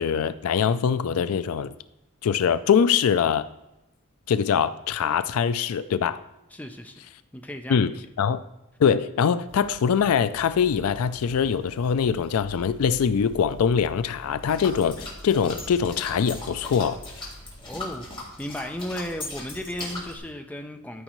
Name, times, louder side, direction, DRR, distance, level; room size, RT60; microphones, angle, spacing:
voice 1, 0.0-1.7 2.2-3.4 4.3-6.2 7.7-7.9 8.2-8.4 8.8-17.0, left 7 dB, 70° left, 14 dB, 0.4 m, -23 dB
voice 2, 6.5-7.0 7.3-7.9 17.7-18.1 18.4-21.0, left 1 dB, 5° left, 5 dB, 0.5 m, -35 dB
sound 1, 9.5-20.3, equal, 90° left, 3.3 m, -46 dB
sound 2, 14.4-20.2, left 2 dB, 20° left, 2.0 m, -39 dB
12.5 x 5.3 x 3.1 m, 0.93 s
head